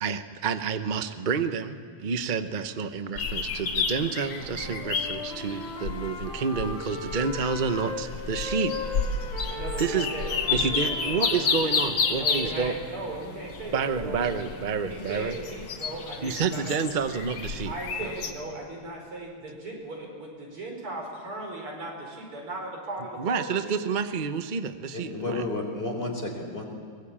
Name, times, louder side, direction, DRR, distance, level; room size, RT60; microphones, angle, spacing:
voice 1, 0.0-8.7 9.3-9.4 9.8-10.1 10.5-12.8 13.7-15.3 16.2-17.7 18.0-18.1 23.2-25.5, right 5 dB, 60° right, 9 dB, 0.5 m, -29 dB
sound 1, 3.2-18.3, left 5 dB, 55° left, 2.1 m, -31 dB
Wind instrument woodwind instrument, 4.4-8.0 8.3-12.6, left 3 dB, 80° left, 6.9 m, -38 dB
voice 2, 9.5-11.2 12.1-14.4 14.9-16.7 17.7-23.8, right 2 dB, 80° right, 0 dB, 6.0 m, -37 dB
voice 3, 24.9-26.7, left 2 dB, 25° left, 2 dB, 4.3 m, -31 dB
23.5 x 20.5 x 8.8 m, 2.3 s
omnidirectional pair, 2.4 m